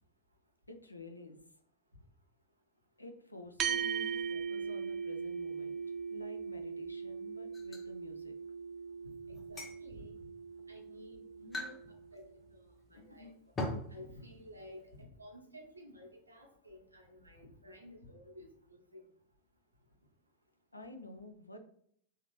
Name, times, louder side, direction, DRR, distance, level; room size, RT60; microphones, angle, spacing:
voice 1, 0.7-1.4 3.0-5.8 6.1-8.4 12.9-13.3 13.9-14.0 20.7-21.6, left 2 dB, 85° left, 5 dB, 0.5 m, -51 dB
sound 1, 3.6-12.3, right 6 dB, 30° right, 0.4 m, -40 dB
sound 2, 7.5-7.9 9.3-9.8 10.6-10.7 11.5-11.8 12.1-12.2 13.6-13.9, left 1 dB, 20° left, 0.7 m, -39 dB
voice 2, 9.0-10.2 10.7-11.7 12.1-13.3 13.9-19.0, left 1 dB, 85° right, 0 dB, 1.0 m, -53 dB
3.4 x 2.8 x 3.1 m, 0.65 s
figure-of-eight pair, 90°, 0 cm